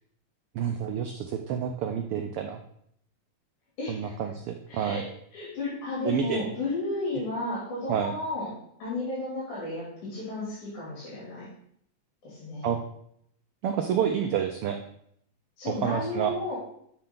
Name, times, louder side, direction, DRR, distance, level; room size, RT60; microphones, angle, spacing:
voice 1, 0.5-2.6 3.9-5.0 6.0-6.4 7.9-8.1 12.6-12.8 13.6-14.8 15.7-16.3, right 8 dB, 80° right, 4 dB, 1.2 m, -29 dB
voice 2, 3.8-4.1 4.7-8.5 8.8-11.5 12.2-12.7 15.6-16.6, left 2 dB, 90° left, -8 dB, 4.7 m, -33 dB
12.0 x 5.8 x 3.9 m, 0.69 s
omnidirectional pair, 3.3 m